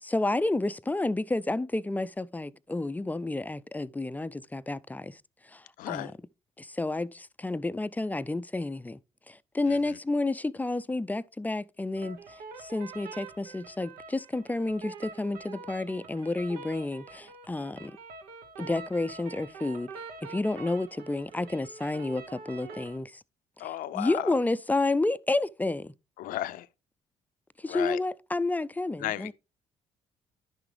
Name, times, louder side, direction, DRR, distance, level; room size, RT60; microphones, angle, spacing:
voice 1, 0.0-6.1 6.6-9.0 9.3-18.0 18.6-19.9 20.3-23.2 23.6-25.9 27.6-29.3, left 2 dB, 10° left, 0.4 m, -30 dB
voice 2, 5.8-6.1 9.7-10.0 23.6-24.3 26.2-26.7 27.6-28.0 29.0-29.3, left 14 dB, 70° left, 0.5 m, -34 dB
sound 1, 12.0-23.0, right 4 dB, 80° right, 1.1 m, -45 dB
10.5 x 5.9 x 3.2 m
hypercardioid pair, 55°, 15 cm